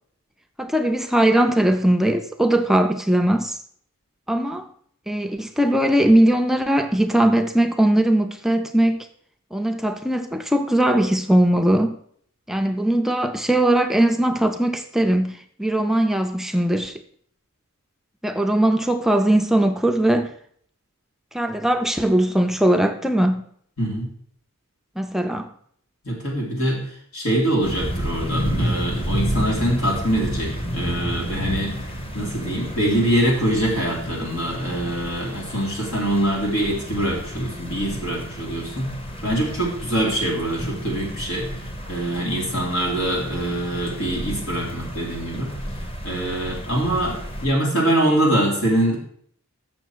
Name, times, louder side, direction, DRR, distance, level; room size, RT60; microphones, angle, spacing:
voice 1, 0.6-3.6 4.3-4.7 5.1-9.1 9.5-12.0 12.5-16.9 18.2-20.3 21.3-23.4 25.0-25.5, right 1 dB, ahead, 0.4 m, -20 dB
voice 2, 23.8-24.1 26.0-26.8 27.1-31.8 32.1-38.9 39.2-41.5 41.9-45.5 46.0-49.0, right 1 dB, 85° left, 3.1 m, -24 dB
sound 1, 27.6-47.5, equal, 25° left, 0.9 m, -31 dB
7.0 x 6.3 x 6.1 m
head